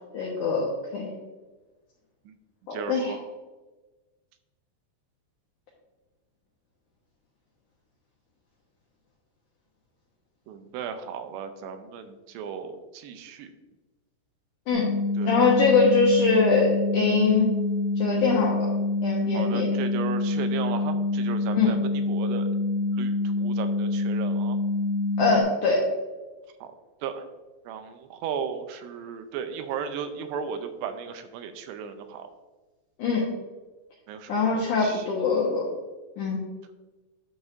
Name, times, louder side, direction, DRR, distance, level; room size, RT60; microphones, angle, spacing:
voice 1, 0.1-1.1 2.7-3.1 14.7-14.9 15.3-17.5 18.0-18.7 19.0-19.7 21.5-21.7 25.2-25.8 33.0-33.2 34.3-35.7 36.2-36.4, left 4 dB, 70° left, -3 dB, 2.1 m, -23 dB
voice 2, 2.7-3.2 10.5-13.5 15.2-15.4 19.3-22.5 22.9-24.6 26.6-26.7 27.0-27.3 27.7-32.3 34.1-35.1, right 7 dB, 90° right, 8 dB, 2.7 m, -35 dB
sound 1, 14.7-25.4, left 2 dB, 65° right, 3.1 m, -26 dB
9.7 x 7.0 x 2.6 m, 1.2 s
omnidirectional pair, 4.8 m